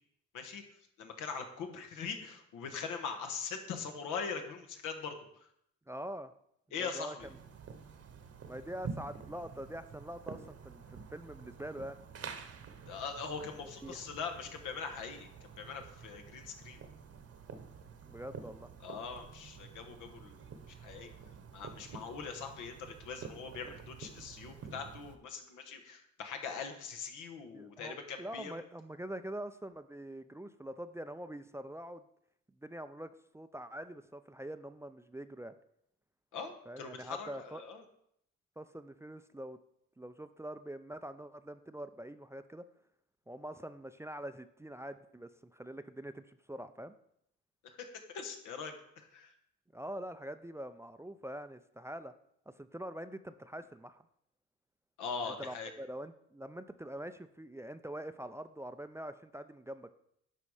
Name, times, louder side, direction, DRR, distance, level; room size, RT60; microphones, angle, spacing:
voice 1, 1.0-5.5 6.7-7.3 12.9-16.8 18.8-21.1 21.5-28.6 36.3-37.8 47.6-49.3 55.0-55.7, left 5 dB, 90° left, 5 dB, 1.2 m, -42 dB
voice 2, 5.9-6.3 6.8-7.2 8.5-12.0 13.8-14.0 18.1-18.7 27.5-32.0 32.6-35.5 36.7-37.6 38.6-39.6 40.0-42.6 43.3-46.9 49.7-52.1 52.5-54.0 55.2-59.9, right 1 dB, 10° right, 11 dB, 0.3 m, -44 dB
sound 1, 7.2-25.2, right 6 dB, 50° right, 1.0 m, -49 dB
11.0 x 4.2 x 4.8 m, 0.73 s
cardioid pair, 90°, 30 cm